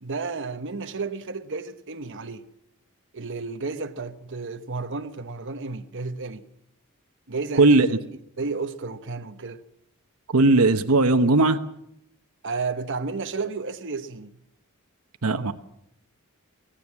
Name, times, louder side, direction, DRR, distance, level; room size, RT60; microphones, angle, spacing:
voice 1, 0.0-2.4 3.1-6.4 7.3-7.9 8.4-9.6 12.4-14.3, right 4 dB, 55° right, 1.1 m, -32 dB
voice 2, 10.3-11.6 15.2-15.5, right 2 dB, 80° right, 1.1 m, -17 dB
24.0 x 17.0 x 7.4 m
head